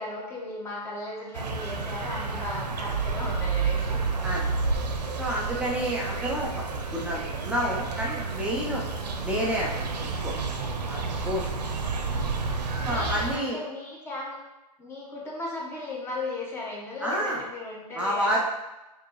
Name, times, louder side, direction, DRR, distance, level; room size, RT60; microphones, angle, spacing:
voice 1, 0.0-4.0 8.9-9.3 11.3-11.5 12.8-14.3 14.8-18.4, left 2 dB, 10° left, -4 dB, 1.0 m, -36 dB
sound 1, 1.3-13.4, right 4 dB, 80° right, 0.7 m, -30 dB
voice 2, 5.2-8.8 9.2-10.3 10.9-11.5 12.1-12.3 12.8-13.6 17.0-17.4 18.0-18.4, equal, 5° right, -4 dB, 0.3 m, -29 dB
5.0 x 2.7 x 3.0 m, 1.0 s
hypercardioid pair, 135°, 21 cm